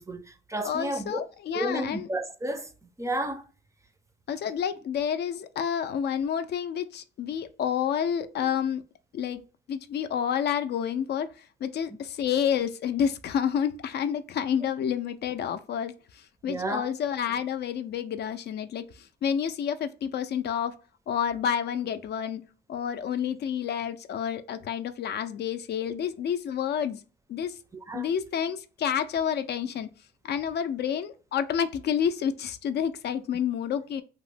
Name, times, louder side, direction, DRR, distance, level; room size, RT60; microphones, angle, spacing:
voice 1, 0.0-1.3 1.5-2.7 3.0-3.4 8.4-8.5 16.5-16.9 27.9-28.1, right 1 dB, 15° right, 0.4 m, -32 dB
voice 2, 0.6-2.1 4.3-8.8 9.1-9.4 9.7-20.7 21.1-22.4 22.7-27.0 27.3-27.6 27.9-29.9 30.2-34.0, left 8 dB, 60° left, 0.4 m, -29 dB
3.0 x 2.0 x 3.3 m
cardioid pair, 90°, 20 cm